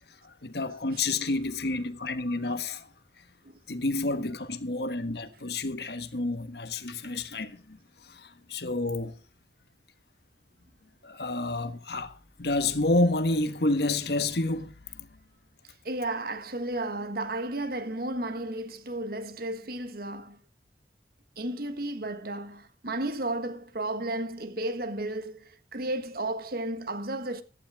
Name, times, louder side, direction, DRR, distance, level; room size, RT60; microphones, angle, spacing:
voice 1, 0.2-2.9 3.2-3.3 3.7-9.2 11.0-15.1, left 2 dB, 65° left, 1.4 m, -29 dB
voice 2, 15.8-20.4 21.4-27.4, right 1 dB, 55° right, 1.5 m, -33 dB
15.5 x 11.5 x 3.5 m
head